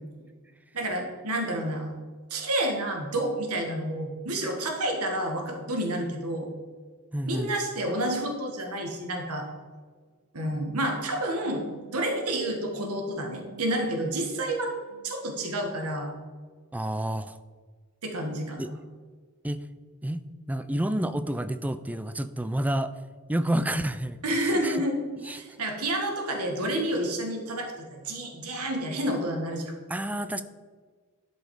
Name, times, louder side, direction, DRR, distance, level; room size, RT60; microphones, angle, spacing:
voice 1, 0.7-1.9 2.3-6.5 7.2-9.5 10.3-16.1 18.0-18.8 24.2-25.0 25.3-29.7, right 1 dB, 80° right, 3 dB, 1.8 m, -29 dB
voice 2, 7.1-7.5 16.7-17.4 18.6-18.8 19.4-19.6 20.0-20.2 20.5-22.9 23.3-24.8 25.2-25.4 29.9-30.4, right 1 dB, 5° right, 11 dB, 0.4 m, -29 dB
11.5 x 5.3 x 4.9 m, 1.5 s
head